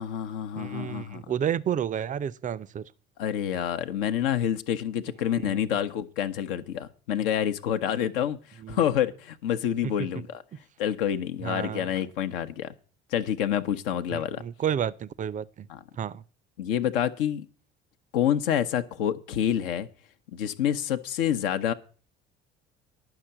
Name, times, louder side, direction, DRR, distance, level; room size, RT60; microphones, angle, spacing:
voice 1, 0.0-1.3 3.2-10.4 10.8-12.7 13.1-14.4 15.7-15.8 16.6-17.5 18.1-19.9 20.3-21.7, left 10 dB, 65° left, 0.8 m, -28 dB
voice 2, 0.6-2.9 5.3-5.6 8.6-8.8 9.8-9.9 11.4-11.9 14.1-15.7 16.0-16.2, right 9 dB, 25° right, 0.5 m, -31 dB
10.5 x 5.9 x 7.7 m
figure-of-eight pair, 60°, 30 cm